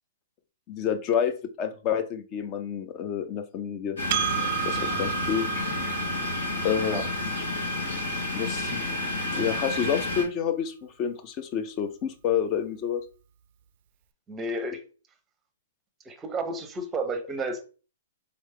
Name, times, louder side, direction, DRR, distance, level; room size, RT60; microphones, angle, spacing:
voice 1, 0.7-4.0 4.7-5.6 6.6-7.0 8.3-8.7 9.4-13.0, left 8 dB, 35° left, 0.6 m, -29 dB
sound 1, 4.0-10.2, left 2 dB, 75° left, 1.7 m, -30 dB
Percussion, 4.1-8.9, right 14 dB, 50° right, 0.4 m, -34 dB
voice 2, 14.3-14.8 16.1-17.7, right 2 dB, 15° right, 0.7 m, -32 dB
3.9 x 3.2 x 3.2 m
hypercardioid pair, 125°, 0 cm